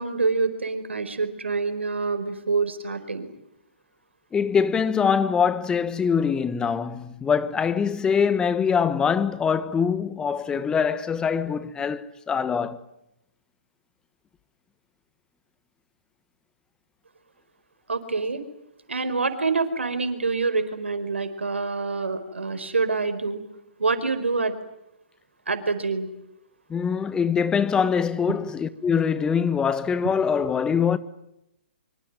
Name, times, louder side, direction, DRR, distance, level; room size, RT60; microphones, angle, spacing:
voice 1, 0.0-3.3 17.9-18.4 18.9-23.4 23.8-24.5 25.5-26.1 28.3-28.4, right 4 dB, 85° right, 4.7 m, -26 dB
voice 2, 4.3-12.8 26.7-31.0, left 6 dB, 10° left, 1.3 m, -23 dB
25.5 x 25.0 x 9.3 m
hypercardioid pair, 135°, 6 cm